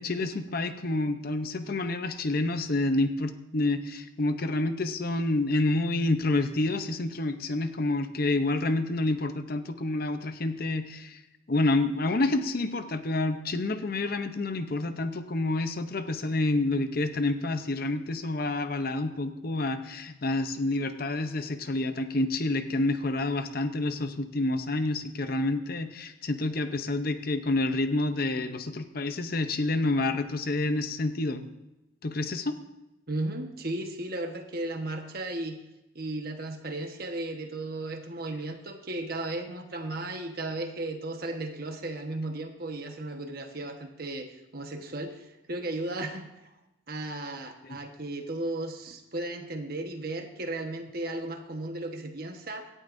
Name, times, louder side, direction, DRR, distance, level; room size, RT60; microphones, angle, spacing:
voice 1, 0.0-11.2 11.5-31.5 32.0-32.5 47.7-47.8, left 2 dB, 50° left, 9 dB, 0.7 m, -28 dB
voice 2, 33.1-35.6 35.9-46.3 46.9-52.7, right 2 dB, 50° right, 4 dB, 1.2 m, -35 dB
17.0 x 11.0 x 2.6 m, 0.95 s
head